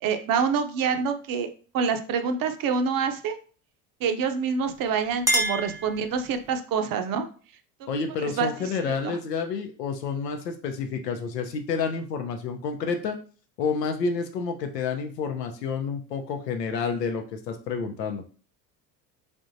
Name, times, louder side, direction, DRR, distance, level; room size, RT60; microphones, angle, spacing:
voice 1, 0.0-3.4 4.0-7.3 7.8-8.0 8.4-9.2, right 6 dB, 45° right, 8 dB, 0.7 m, -27 dB
Chink clink, 4.7-6.6, right 1 dB, 5° right, 0.6 m, -29 dB
voice 2, 7.9-13.2 13.6-18.2, left 5 dB, 90° left, 5 dB, 0.7 m, -29 dB
3.4 x 3.3 x 2.6 m, 0.40 s
hypercardioid pair, 70°, 48 cm